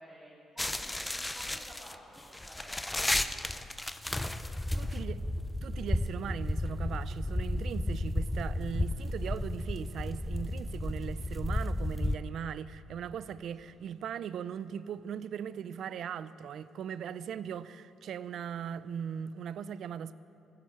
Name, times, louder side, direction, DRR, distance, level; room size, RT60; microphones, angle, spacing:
voice 1, 0.0-3.7 4.3-4.9 6.1-6.3 8.5-8.7 13.6-13.7, equal, 5° right, 3.0 m, -54 dB
sound 1, 0.6-12.2, left 1 dB, 10° left, 0.5 m, -33 dB
voice 2, 4.8-5.2 5.6-20.1, right 8 dB, 70° right, 0.4 m, -39 dB
15.5 x 9.4 x 7.9 m
cardioid pair, 90°, 0 cm